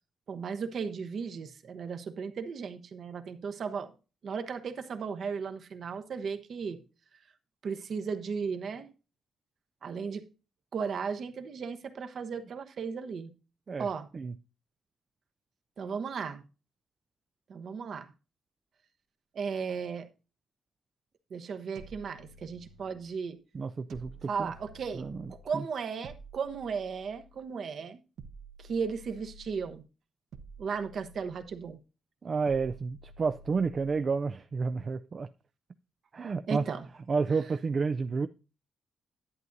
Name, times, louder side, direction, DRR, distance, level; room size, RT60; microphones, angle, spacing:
voice 1, 0.3-3.9 4.2-6.8 7.6-8.9 9.8-10.3 10.7-13.3 13.8-14.1 15.8-16.4 17.5-18.1 19.3-20.1 21.3-23.4 24.3-28.0 28.6-29.8 30.6-31.8 36.5-36.8, right 6 dB, 55° right, 1.0 m, -35 dB
sound 1, 21.8-23.1 23.9-25.5 26.0-27.5 28.2-29.8 30.3-31.7 32.5-34.1, right 3 dB, 85° right, 1.0 m, -51 dB
voice 2, 23.5-24.5 24.9-25.6 32.2-35.3 36.1-36.6 37.1-38.3, right 4 dB, 35° right, 0.3 m, -30 dB
11.0 x 9.2 x 2.6 m
cardioid pair, 140°, 0 cm